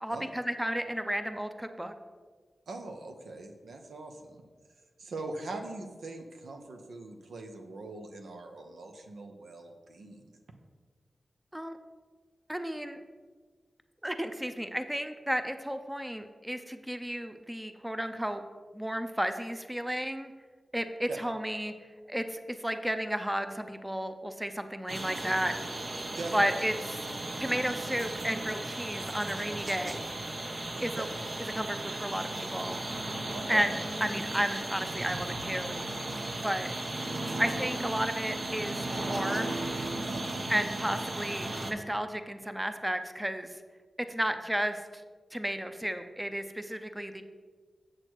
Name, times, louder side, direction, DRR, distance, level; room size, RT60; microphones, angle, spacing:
voice 1, 0.0-1.9 11.5-11.8 12.5-13.0 14.0-18.4 18.7-20.3 20.7-21.7 22.1-25.5 26.3-26.7 27.4-30.1 30.8-31.1 31.5-32.8 33.5-33.7 34.0-35.8 36.4-36.7 37.4-39.6 40.5-43.5 44.0-45.0 45.3-47.2, equal, 10° right, 8 dB, 0.6 m, -32 dB
voice 2, 2.7-4.4 5.0-10.4 21.1-21.2 26.0-26.5 30.7-31.1 33.3-33.7 40.1-40.4, right 2 dB, 90° right, 3 dB, 0.9 m, -42 dB
sound 1, 24.9-41.7, right 2 dB, 55° right, 1.0 m, -36 dB
7.6 x 6.3 x 4.6 m, 1.5 s
cardioid pair, 55°, 0 cm